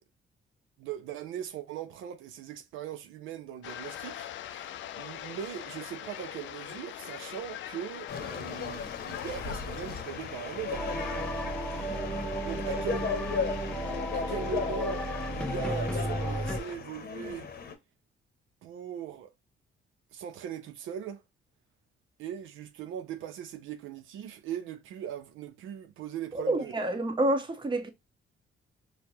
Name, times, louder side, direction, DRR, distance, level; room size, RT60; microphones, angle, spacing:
voice 1, 0.8-11.2 11.7-12.0 12.4-13.1 14.1-17.5 18.6-19.3 20.1-21.2 22.2-26.8, right 9 dB, 85° right, 0.6 m, -40 dB
sound 1, 3.6-16.8, left 11 dB, 70° left, 0.4 m, -43 dB
sound 2, 8.1-17.7, left 6 dB, 50° left, 0.8 m, -37 dB
sound 3, 10.7-16.6, right 1 dB, 5° left, 0.5 m, -34 dB
voice 2, 26.3-27.9, right 1 dB, 25° right, 1.0 m, -28 dB
4.4 x 2.2 x 2.7 m
cardioid pair, 90°, 20 cm